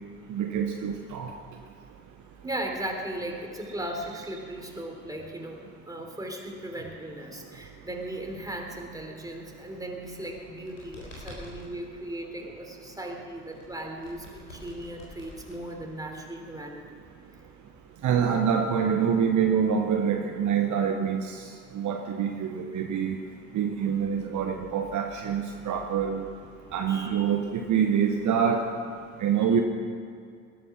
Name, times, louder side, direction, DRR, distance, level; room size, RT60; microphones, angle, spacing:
voice 1, 0.3-1.3 18.0-21.4 21.7-23.2 23.5-26.2 26.7-28.7 29.2-29.6, right 7 dB, 50° right, 3 dB, 1.3 m, -26 dB
voice 2, 2.4-17.0 26.9-27.2, right 1 dB, 10° right, 1 dB, 3.5 m, -37 dB
sound 1, 9.9-11.7 13.5-16.1, left 1 dB, 90° left, 4.0 m, -47 dB
19.5 x 11.0 x 6.2 m, 2.3 s
figure-of-eight pair, 55°, 37 cm